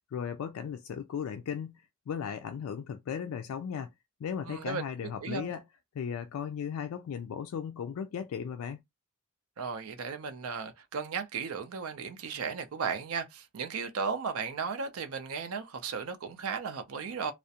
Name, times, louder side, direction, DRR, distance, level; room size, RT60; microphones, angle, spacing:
voice 1, 0.1-3.9 4.2-5.6 6.0-8.8, left 7 dB, 85° left, 0.3 m, -36 dB
voice 2, 4.4-5.5 9.6-17.3, right 5 dB, 90° right, 0.5 m, -35 dB
2.4 x 2.0 x 2.7 m
head